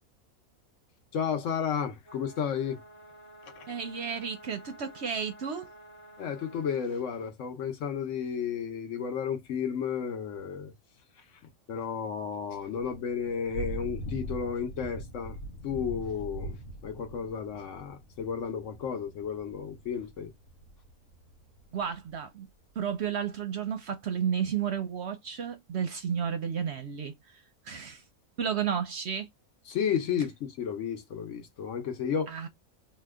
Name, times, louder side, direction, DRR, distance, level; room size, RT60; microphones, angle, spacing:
voice 1, 1.1-2.8 3.6-3.7 6.2-10.7 11.7-15.4 15.6-16.6 16.8-20.3 29.7-32.3, left 7 dB, 65° left, 1.0 m, -32 dB
sound 1, 2.0-6.9, equal, 30° left, 0.8 m, -51 dB
voice 2, 3.7-5.7 21.7-22.5 22.8-28.0 28.4-29.3 32.3-32.5, right 7 dB, 60° right, 0.7 m, -32 dB
Thunder / Rain, 12.6-22.1, right 1 dB, 80° left, 1.2 m, -42 dB
2.8 x 2.2 x 3.4 m
omnidirectional pair, 1.5 m